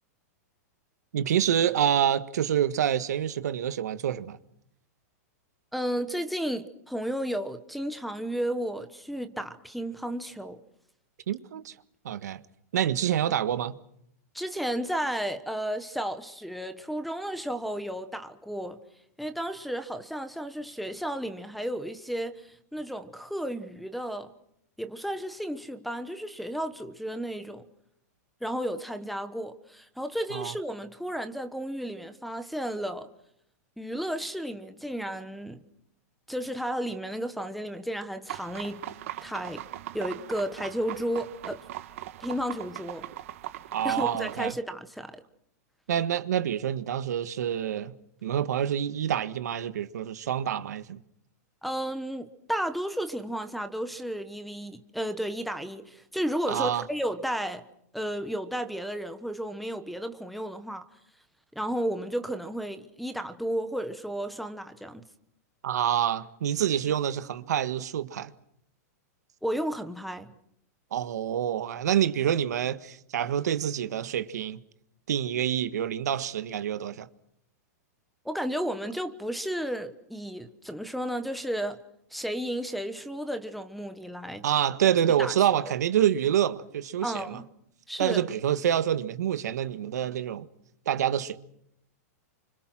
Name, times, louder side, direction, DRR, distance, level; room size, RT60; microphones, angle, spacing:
voice 1, 1.1-4.4 11.3-11.7 12.0-12.4 12.7-13.7 30.3-30.5 43.7-44.5 45.9-47.9 48.2-51.0 56.5-56.8 65.6-68.3 70.9-74.6 75.1-77.1 84.4-87.4 88.0-90.5 90.8-91.4, right 10 dB, 80° right, 1.7 m, -27 dB
voice 2, 5.7-10.6 14.3-18.8 19.2-24.3 24.8-27.6 28.4-33.1 33.8-35.6 36.3-38.8 39.2-39.6 39.9-41.6 42.2-43.0 43.8-45.2 51.6-57.6 57.9-60.9 61.5-65.0 69.4-70.3 78.2-81.8 82.1-84.5 85.2-85.3 85.6-85.7 87.0-87.4 87.9-88.2, equal, ahead, 1.1 m, -33 dB
sound 1, 38.3-44.5, right 13 dB, 55° right, 1.6 m, -40 dB
29.0 x 26.0 x 6.2 m
supercardioid pair, 165°, 9 cm